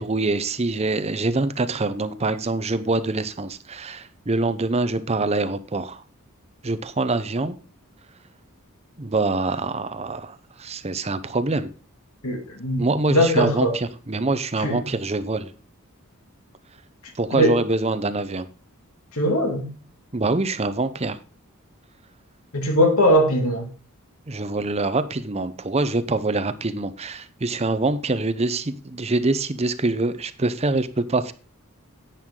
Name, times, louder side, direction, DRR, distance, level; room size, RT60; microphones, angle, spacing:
voice 1, 0.0-6.0 6.6-7.6 9.0-11.7 12.8-15.5 17.1-18.5 20.1-21.2 24.3-31.3, right 2 dB, 30° right, 0.7 m, -25 dB
voice 2, 12.2-13.8 14.6-14.8 17.3-17.6 19.1-19.7 22.5-23.7, equal, 75° left, 2.7 m, -20 dB
11.0 x 9.2 x 3.8 m
head